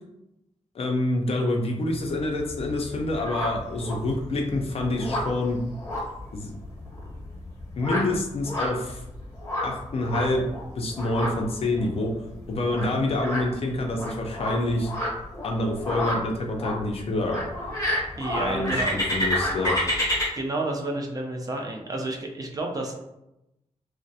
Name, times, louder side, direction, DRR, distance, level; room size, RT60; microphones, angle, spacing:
voice 1, 0.7-5.6 6.3-6.5 7.8-9.0 9.6-10.4 10.8-12.1 12.5-14.9 15.4-17.4 18.4-19.8, left 2 dB, 55° left, 2 dB, 0.4 m, -27 dB
sound 1, 1.9-20.3, left 1 dB, 25° left, 0.8 m, -31 dB
voice 2, 18.2-18.9 20.3-23.0, right 2 dB, 30° right, 1 dB, 0.4 m, -30 dB
2.3 x 2.0 x 2.6 m, 0.88 s
wide cardioid pair, 125°, 12 cm